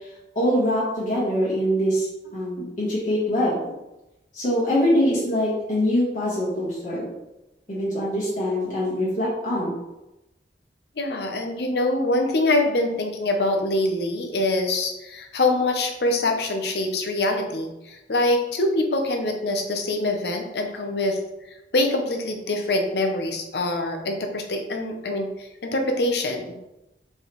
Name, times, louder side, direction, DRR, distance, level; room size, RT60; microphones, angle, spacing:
voice 1, 0.3-2.1 2.3-3.6 4.3-7.1 7.7-9.8, equal, 45° left, -8 dB, 1.5 m, -23 dB
voice 2, 11.0-21.2 21.7-26.5, left 2 dB, 70° left, 3 dB, 0.7 m, -24 dB
4.5 x 3.3 x 3.1 m, 0.96 s
head